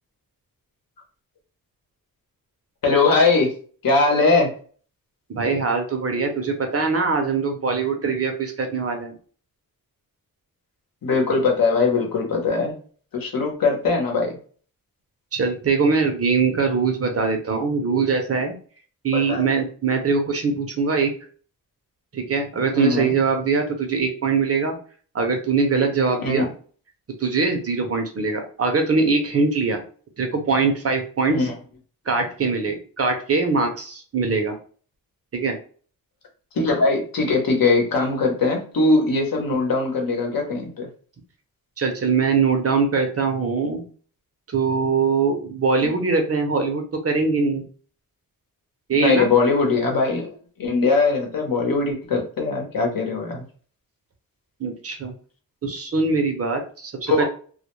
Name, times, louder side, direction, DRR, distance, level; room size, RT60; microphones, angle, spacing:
voice 1, 2.8-3.5 3.8-4.5 11.0-12.7 13.1-14.4 19.1-19.4 22.7-23.1 26.2-26.5 31.3-31.5 36.5-40.9 45.8-45.9 48.9-53.4 57.1-57.2, left 3 dB, 70° left, 1 dB, 0.9 m, -21 dB
voice 2, 5.3-9.1 15.3-18.6 19.0-21.1 22.1-24.8 25.1-26.5 27.2-29.8 30.2-31.4 32.1-34.6 35.3-35.6 41.8-43.8 44.5-47.6 48.9-49.3 54.6-55.1 55.6-57.2, right 4 dB, 40° right, 4 dB, 0.6 m, -22 dB
2.1 x 2.1 x 3.0 m, 0.42 s
wide cardioid pair, 95°, 36 cm